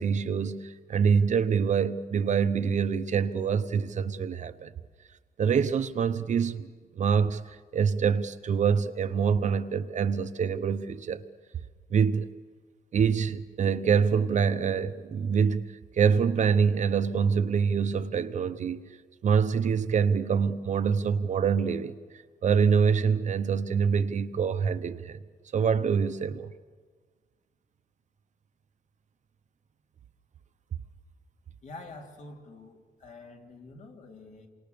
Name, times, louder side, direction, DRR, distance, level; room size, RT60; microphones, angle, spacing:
voice 1, 0.0-4.7 5.4-6.7 6.9-11.2 11.9-12.3 12.9-18.8 19.2-21.9 22.4-25.2 25.5-26.5, right 6 dB, 50° right, 0.9 m, -25 dB
voice 2, 31.6-34.5, left 3 dB, 50° left, 3.3 m, -47 dB
28.0 x 26.0 x 7.0 m
wide cardioid pair, 150°, 16 cm